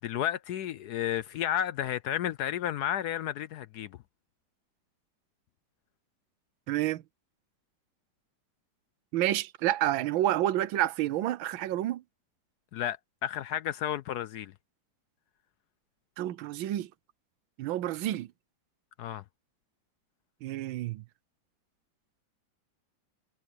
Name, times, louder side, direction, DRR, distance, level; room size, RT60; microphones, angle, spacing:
voice 1, 0.0-4.0 12.7-14.5 19.0-19.2, left 11 dB, 70° left, 1.0 m, -32 dB
voice 2, 6.7-7.0 9.1-12.0 16.2-16.9 17.6-18.3 20.4-21.0, right 13 dB, 90° right, 1.5 m, -29 dB
omnidirectional pair, 2.1 m